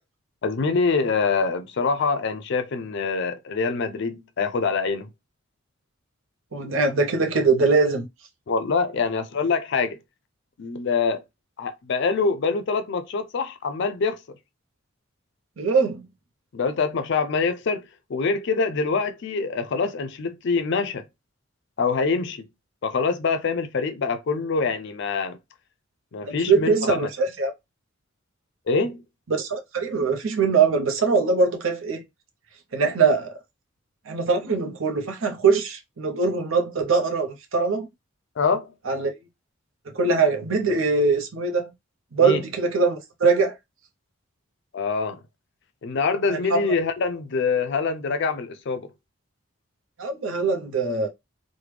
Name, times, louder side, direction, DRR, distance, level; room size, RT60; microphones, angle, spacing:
voice 1, 0.4-5.1 8.5-10.0 10.6-11.2 11.6-14.2 16.5-17.8 18.1-21.0 21.8-22.5 22.8-25.4 26.1-26.8 28.7-29.0 38.4-38.7 42.2-42.4 44.7-45.2 45.8-48.9, left 4 dB, 60° left, 0.4 m, -25 dB
voice 2, 6.5-8.1 15.6-16.1 26.2-27.5 29.3-32.0 32.7-33.4 34.1-37.9 38.9-39.2 39.9-41.7 42.1-43.5 46.3-46.7 50.0-51.1, right 4 dB, 70° right, 0.7 m, -22 dB
3.2 x 2.1 x 3.2 m
head